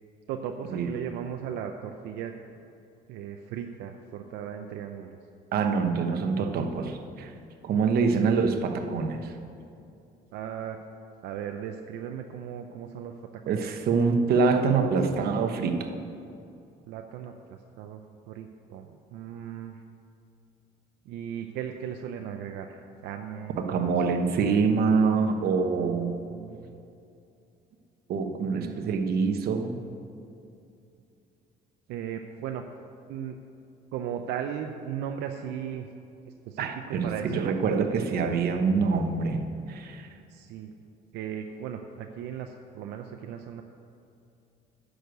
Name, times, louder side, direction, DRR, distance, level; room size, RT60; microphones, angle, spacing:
voice 1, 0.3-2.3 3.1-5.2 10.3-10.8 11.2-13.1 13.5-13.7 16.9-18.0 18.3-19.8 21.1-24.1 25.5-26.0 26.3-26.8 28.4-28.9 31.9-32.6 33.1-33.4 33.9-35.9 36.3-37.6 38.5-38.6 40.3-40.7 41.1-43.6, right 9 dB, 85° right, 5 dB, 0.6 m, -37 dB
voice 2, 5.5-7.3 7.6-9.3 13.5-15.9 23.6-26.1 28.1-29.8 36.6-39.4 39.7-40.1, right 5 dB, 65° right, 5 dB, 1.1 m, -25 dB
10.0 x 6.5 x 8.0 m, 2.6 s
cardioid pair, 110°, 17 cm